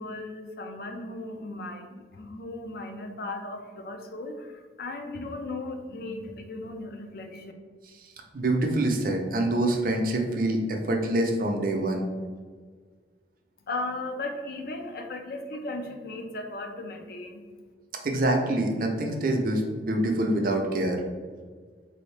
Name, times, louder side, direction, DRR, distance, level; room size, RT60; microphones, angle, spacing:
voice 1, 0.0-7.5 13.6-17.4, left 2 dB, 55° left, 4 dB, 0.4 m, -36 dB
voice 2, 8.3-12.1 18.0-21.0, right 1 dB, 50° right, 2 dB, 0.5 m, -25 dB
3.7 x 2.7 x 3.2 m, 1.5 s
head